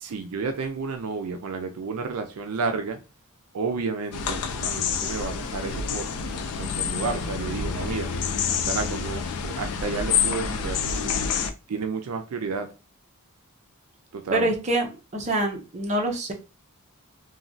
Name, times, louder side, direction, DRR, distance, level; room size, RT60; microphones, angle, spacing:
voice 1, 0.0-3.0 3.5-8.1 8.5-11.3 11.7-12.7 14.1-14.5, right 4 dB, 75° right, 0.4 m, -31 dB
sound 1, 4.1-11.5, left 6 dB, 80° left, 0.4 m, -28 dB
voice 2, 14.3-16.3, right 1 dB, 30° right, 0.6 m, -26 dB
3.0 x 2.3 x 2.5 m
head